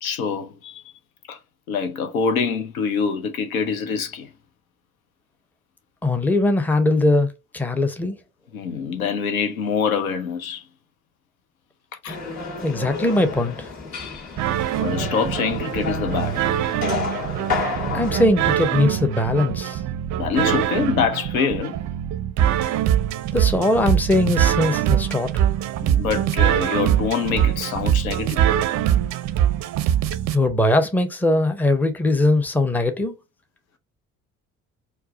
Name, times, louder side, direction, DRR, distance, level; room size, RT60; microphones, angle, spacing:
voice 1, 0.0-0.8 1.3-1.4 1.7-4.3 8.5-10.7 12.0-12.2 14.8-16.4 20.2-21.8 25.8-28.4, left 6 dB, 75° left, 0.7 m, -25 dB
voice 2, 6.0-8.2 12.6-13.7 17.9-19.8 23.3-25.5 30.3-33.1, left 2 dB, 5° left, 0.6 m, -20 dB
sound 1, 12.1-18.2, left 4 dB, 40° left, 2.0 m, -30 dB
sound 2, 14.4-30.4, right 11 dB, 40° right, 0.5 m, -23 dB
4.5 x 2.1 x 3.7 m
figure-of-eight pair, 50°, 43 cm